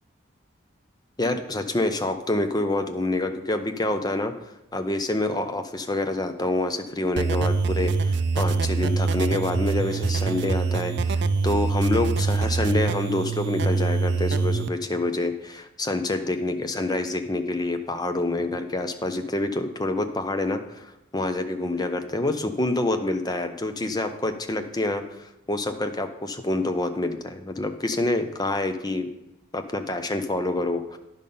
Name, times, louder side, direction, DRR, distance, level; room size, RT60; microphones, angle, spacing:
voice 1, 1.2-4.3 4.7-29.1 29.5-31.0, left 2 dB, 20° left, 7 dB, 0.5 m, -27 dB
sound 1, 7.1-14.7, right 4 dB, 55° right, 0.4 m, -24 dB
10.5 x 5.3 x 5.4 m, 0.90 s
head